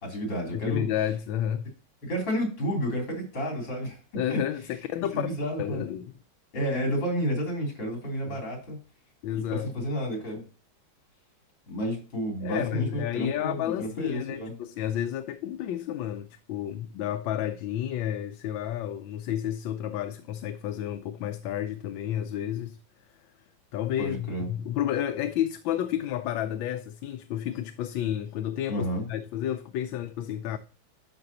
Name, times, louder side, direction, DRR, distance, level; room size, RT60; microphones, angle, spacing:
voice 1, 0.0-0.9 2.0-4.0 4.3-4.4 5.1-5.8 6.5-8.8 9.3-10.4 11.7-14.5 24.0-24.5 28.7-29.1, equal, 70° left, 3.9 m, -31 dB
voice 2, 0.5-1.7 4.1-5.3 5.6-6.1 8.3-8.4 9.2-9.9 12.4-22.8 23.7-30.6, left 11 dB, 85° left, 1.4 m, -31 dB
12.5 x 5.3 x 2.8 m
omnidirectional pair, 2.1 m